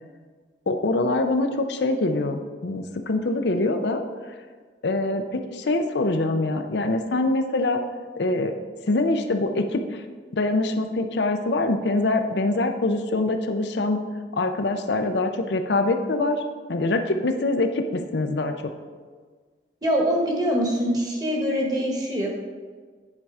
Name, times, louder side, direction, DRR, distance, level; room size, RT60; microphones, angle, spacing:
voice 1, 0.7-4.0 4.8-7.8 8.2-8.5 8.9-10.0 10.3-14.0 14.3-16.4 16.7-18.7, left 2 dB, 70° left, 6 dB, 0.6 m, -24 dB
voice 2, 19.8-22.3, equal, 20° right, -1 dB, 1.4 m, -24 dB
9.7 x 4.5 x 4.8 m, 1.5 s
head